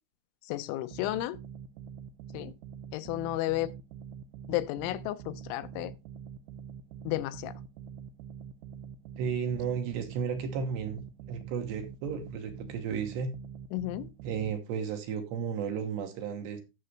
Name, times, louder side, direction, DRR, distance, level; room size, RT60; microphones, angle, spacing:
voice 1, 0.5-1.4 2.3-2.5 2.9-3.7 4.5-5.9 7.1-7.5 13.7-14.1, left 16 dB, 80° left, 3.0 m, -32 dB
sound 1, 0.9-14.5, right 7 dB, 85° right, 2.3 m, -45 dB
voice 2, 9.2-13.3 14.2-16.6, right 6 dB, 70° right, 3.0 m, -33 dB
14.5 x 6.6 x 3.3 m
omnidirectional pair, 5.6 m